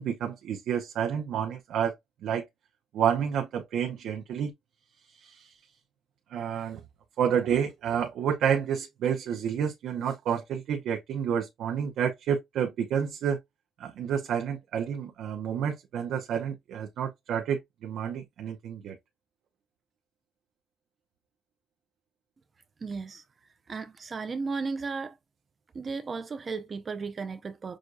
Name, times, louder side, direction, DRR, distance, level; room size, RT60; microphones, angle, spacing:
voice 1, 0.0-2.0 2.2-2.5 2.9-4.5 5.1-5.6 6.3-6.8 7.2-13.4 13.8-19.0, right 8 dB, 70° right, 0.7 m, -29 dB
voice 2, 22.8-23.2 23.7-25.2 25.7-27.8, right 4 dB, 35° right, 0.4 m, -35 dB
6.3 x 2.2 x 2.5 m
cardioid pair, 110°, 0 cm